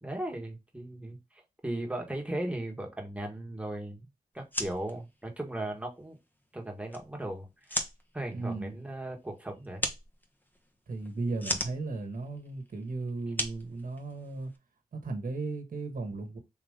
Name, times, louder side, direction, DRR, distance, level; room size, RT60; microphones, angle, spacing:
voice 1, 0.0-4.1 4.3-6.2 6.5-7.8 8.1-9.8, right 1 dB, 10° right, 1.5 m, -37 dB
sound 1, 4.4-14.6, left 1 dB, 10° left, 1.0 m, -39 dB
voice 2, 8.3-8.8 10.9-14.5 14.9-16.4, right 3 dB, 65° right, 1.3 m, -36 dB
3.9 x 3.0 x 3.6 m
cardioid pair, 50°, 15 cm